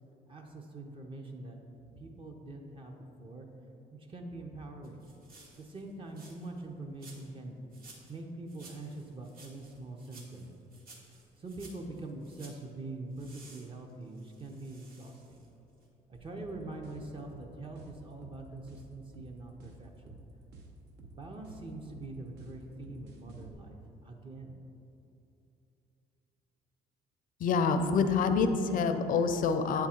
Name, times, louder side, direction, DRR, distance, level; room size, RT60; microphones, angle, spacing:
voice 1, 0.3-3.5 4.1-5.0 5.6-7.6 8.1-10.5 11.4-15.4 16.1-20.2 21.1-23.8 24.0-24.6, right 2 dB, 30° right, 2 dB, 0.6 m, -44 dB
sound 1, 4.8-6.6 7.0-7.4 7.7-8.2 8.5-12.6 13.2-15.5 15.8-15.9, right 3 dB, 60° right, 1.2 m, -56 dB
sound 2, 16.1-23.5, right 2 dB, 75° right, 0.9 m, -52 dB
voice 2, 27.4-29.9, left 5 dB, 55° left, 8 dB, 0.5 m, -27 dB
7.7 x 3.6 x 4.3 m, 2.8 s
cardioid pair, 110°, 17 cm